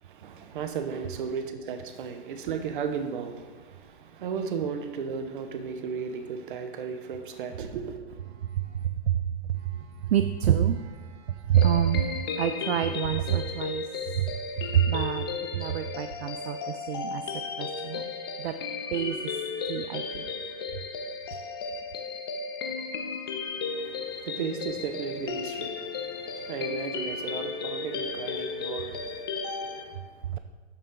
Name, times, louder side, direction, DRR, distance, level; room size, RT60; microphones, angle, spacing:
voice 1, 0.0-8.2 23.7-30.4, right 6 dB, 50° right, 7 dB, 0.9 m, -35 dB
voice 2, 8.4-15.2 15.5-17.2 17.6-18.1 18.4-18.5 18.9-20.3 30.3-30.4, right 10 dB, 65° right, 9 dB, 0.5 m, -28 dB
sound 1, 11.5-29.8, left 5 dB, 25° left, 0.3 m, -34 dB
12.5 x 4.2 x 3.8 m, 1.4 s
hypercardioid pair, 145°, 34 cm